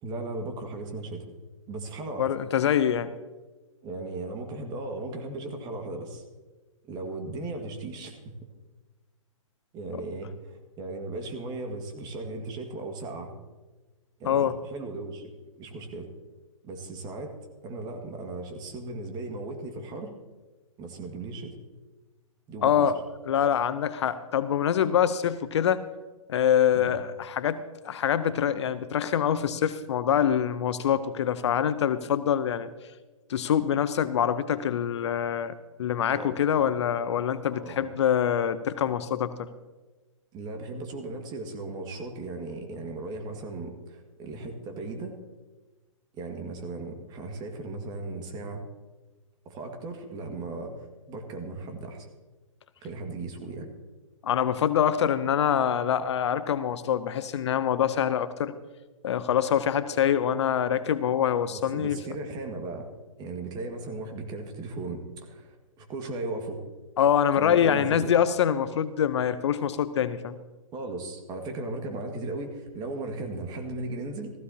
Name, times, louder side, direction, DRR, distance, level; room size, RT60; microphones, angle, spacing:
voice 1, 0.0-1.2 1.7-2.3 3.8-6.2 6.8-8.3 9.7-13.3 14.2-15.2 15.6-16.1 16.6-17.3 17.6-20.1 20.8-21.5 22.5-22.9 26.7-26.9 36.1-36.4 37.4-37.9 40.3-45.1 46.1-48.6 49.4-52.1 52.8-53.7 61.5-62.9 63.2-66.6 67.4-68.1 70.7-74.3, right 2 dB, 25° right, 4 dB, 1.8 m, -37 dB
voice 2, 2.2-3.1 9.9-10.0 14.2-14.6 22.6-23.0 23.2-25.8 26.3-32.7 33.3-39.5 54.2-58.5 59.0-62.0 67.0-70.4, left 9 dB, 55° left, 14 dB, 0.7 m, -25 dB
15.5 x 15.0 x 2.8 m, 1.2 s
hypercardioid pair, 130°, 17 cm